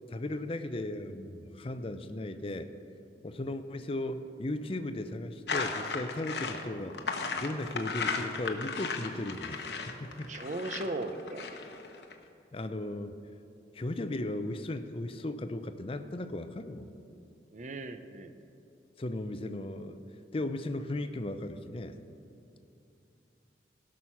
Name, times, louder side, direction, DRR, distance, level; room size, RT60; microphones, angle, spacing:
voice 1, 0.1-2.7 3.2-10.3 12.5-13.1 13.7-16.9 19.0-20.0 20.3-22.0, left 1 dB, 30° left, 9 dB, 0.5 m, -36 dB
sound 1, 5.5-12.1, left 4 dB, 70° left, 0.9 m, -35 dB
voice 2, 10.3-11.5 17.5-18.5, right 2 dB, 40° right, 8 dB, 0.6 m, -37 dB
17.0 x 6.3 x 5.8 m, 2.8 s
head